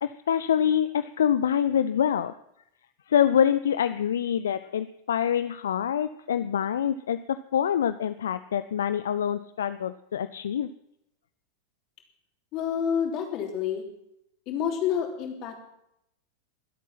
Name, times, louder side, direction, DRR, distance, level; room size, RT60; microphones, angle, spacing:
voice 1, 0.0-2.3 3.1-10.7, left 9 dB, 65° left, 12 dB, 0.5 m, -25 dB
voice 2, 12.5-13.8 14.5-15.7, left 8 dB, 40° left, 2 dB, 3.3 m, -28 dB
22.0 x 8.4 x 5.8 m, 0.80 s
figure-of-eight pair, 90°, 0 cm